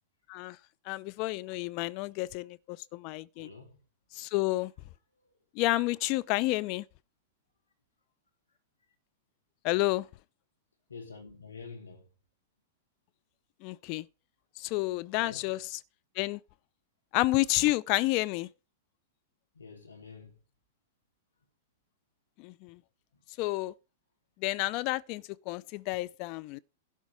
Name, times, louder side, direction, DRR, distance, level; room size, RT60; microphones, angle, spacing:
voice 1, 0.9-3.5 4.1-4.7 5.5-6.8 9.6-10.1 13.6-14.1 14.6-15.6 16.2-16.4 17.1-18.5 22.4-22.8 23.4-23.7 24.4-26.6, left 19 dB, 45° left, 0.5 m, -30 dB
voice 2, 3.3-3.8 5.1-5.4 10.9-12.1 15.1-15.5 19.5-20.4 23.1-23.2, left 4 dB, 85° left, 3.3 m, -48 dB
12.0 x 4.7 x 7.9 m
figure-of-eight pair, 100°, 0 cm